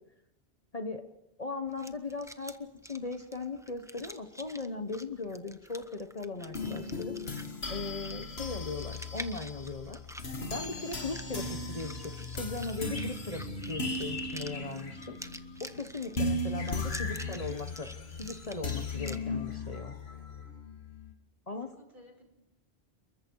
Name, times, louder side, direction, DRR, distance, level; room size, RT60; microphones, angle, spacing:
voice 1, 1.4-2.5 2.8-7.2 7.7-10.0 10.5-15.2 15.6-17.9 18.2-20.0 21.5-21.7, left 3 dB, 35° left, 7 dB, 1.2 m, -38 dB
sound 1, 1.7-19.2, equal, 5° right, 0.9 m, -49 dB
sound 2, 6.3-21.1, left 2 dB, 75° left, 2.2 m, -37 dB
voice 2, 17.0-17.8 21.5-22.3, equal, 50° right, 3 dB, 5.7 m, -59 dB
27.5 x 23.0 x 4.7 m, 0.84 s
omnidirectional pair, 1.1 m